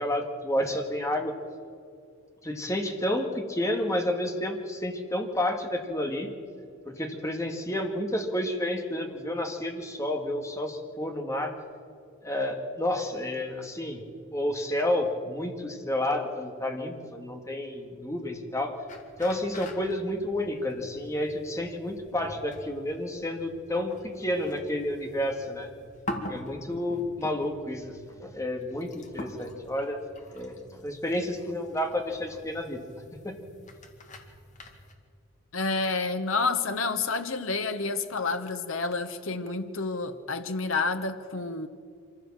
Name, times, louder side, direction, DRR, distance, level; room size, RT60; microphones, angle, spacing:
voice 1, 0.0-1.3 2.4-6.3 6.9-11.5 12.2-14.0 14.3-18.8 19.2-25.7 26.3-30.0 30.3-32.9 33.1-33.4, left 1 dB, 15° left, 3 dB, 2.0 m, -30 dB
sound 1, 18.9-34.9, left 1 dB, 40° left, 2.2 m, -45 dB
voice 2, 35.5-41.7, left 3 dB, 85° left, 8 dB, 1.2 m, -29 dB
25.5 x 15.0 x 7.5 m, 2.3 s
head